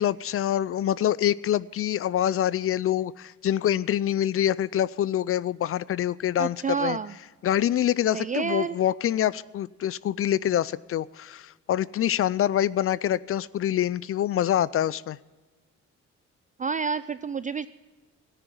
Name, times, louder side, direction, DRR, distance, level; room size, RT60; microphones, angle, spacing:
voice 1, 0.0-7.0 7.4-15.2, left 11 dB, 50° left, 21 dB, 0.4 m, -25 dB
voice 2, 6.4-7.1 8.1-8.8 16.6-17.7, right 6 dB, 25° right, 14 dB, 0.3 m, -29 dB
13.5 x 10.0 x 6.8 m, 1.2 s
cardioid pair, 90°, 30 cm